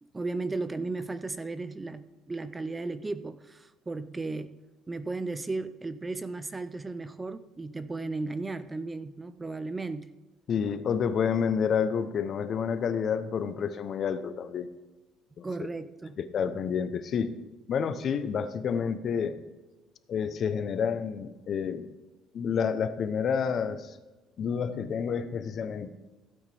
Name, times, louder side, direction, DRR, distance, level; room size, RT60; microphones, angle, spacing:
voice 1, 0.0-4.6 4.9-10.1 15.4-16.2, right 3 dB, 15° right, 0.4 m, -35 dB
voice 2, 10.5-14.7 15.4-15.5 16.2-17.3 17.7-19.4 20.1-21.9 22.3-24.0 24.4-25.9, left 7 dB, 40° left, 0.8 m, -29 dB
16.0 x 8.8 x 3.4 m
cardioid pair, 145°, 0 cm